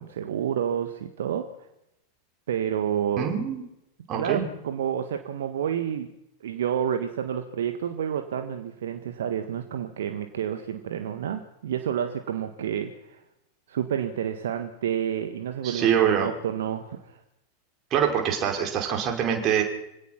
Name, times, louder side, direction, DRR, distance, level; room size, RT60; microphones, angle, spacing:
voice 1, 0.0-1.5 2.5-3.3 4.1-6.1 6.4-13.2 13.7-17.2, right 9 dB, 65° right, 8 dB, 1.6 m, -29 dB
voice 2, 3.2-3.6 4.1-4.5 15.6-16.3 17.9-19.6, right 8 dB, 35° right, 2 dB, 5.2 m, -24 dB
25.5 x 17.5 x 6.0 m, 0.85 s
figure-of-eight pair, 90°, 0 cm